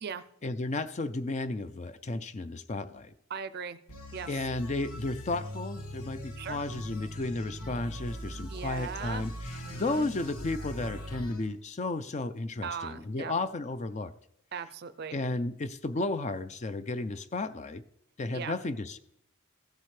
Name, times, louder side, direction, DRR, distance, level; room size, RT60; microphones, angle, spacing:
voice 1, 0.4-3.1 4.3-14.1 15.1-17.8 18.2-19.0, left 2 dB, 30° left, 13 dB, 0.4 m, -33 dB
voice 2, 3.3-3.8 4.1-4.5 6.4-6.6 8.5-10.1 12.6-13.4 14.5-15.2 18.3-18.6, right 6 dB, 45° right, 13 dB, 0.5 m, -39 dB
sound 1, 3.9-11.4, equal, 90° left, 1.4 m, -41 dB
15.0 x 7.6 x 3.2 m, 0.77 s
head